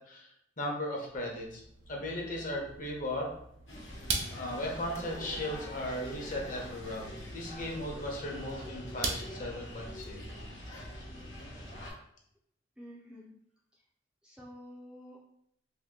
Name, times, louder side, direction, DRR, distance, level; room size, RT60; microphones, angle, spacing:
voice 1, 0.1-1.6 1.9-3.3 4.3-7.1 7.3-10.2, left 1 dB, 45° left, -1 dB, 0.8 m, -37 dB
sound 1, 1.1-11.6, right 4 dB, 85° right, 0.6 m, -43 dB
sound 2, 3.7-11.9, equal, 80° left, 1.0 m, -44 dB
voice 2, 12.8-13.3 13.7-13.8 14.2-15.2, equal, 5° right, -4 dB, 0.4 m, -49 dB
2.7 x 2.6 x 3.6 m, 0.71 s
head